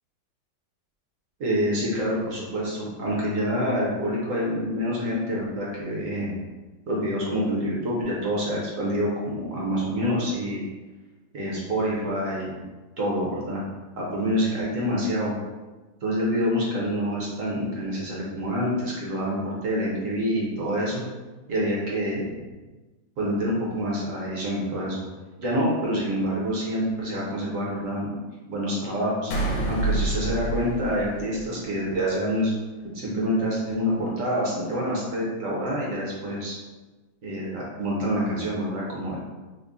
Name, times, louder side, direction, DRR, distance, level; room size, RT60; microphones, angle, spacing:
voice 1, 1.4-6.3 6.9-10.6 11.3-12.6 13.0-13.6 14.0-15.3 16.0-21.0 21.5-22.3 23.2-25.0 25.4-28.1 28.5-29.3 29.7-32.5 32.9-36.6 37.2-39.2, equal, 55° right, -4 dB, 1.0 m, -27 dB
sound 1, 29.3-31.9, right 2 dB, 80° left, 1.3 m, -27 dB
3.9 x 2.1 x 3.6 m, 1.2 s
omnidirectional pair, 2.1 m